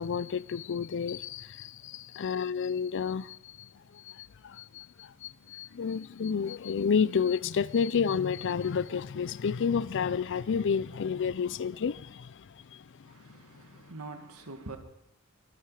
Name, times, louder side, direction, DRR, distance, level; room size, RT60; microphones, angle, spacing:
voice 1, 0.0-13.6, left 6 dB, 55° left, 0.4 m, -31 dB
voice 2, 13.0-14.8, right 3 dB, 85° right, 1.9 m, -44 dB
22.5 x 9.5 x 4.8 m
head